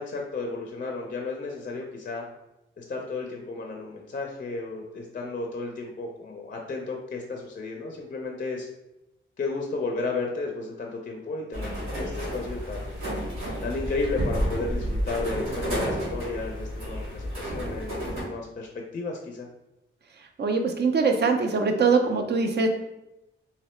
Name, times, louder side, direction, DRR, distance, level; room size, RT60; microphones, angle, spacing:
voice 1, 0.0-2.2 2.8-8.7 9.4-12.9 13.6-19.5, left 3 dB, 40° left, 1 dB, 0.4 m, -33 dB
sound 1, 11.5-18.2, equal, 85° right, 1.2 m, -31 dB
voice 2, 20.2-22.7, right 4 dB, 55° right, 5 dB, 0.4 m, -23 dB
2.8 x 2.0 x 3.0 m, 0.93 s
cardioid pair, 70°, 21 cm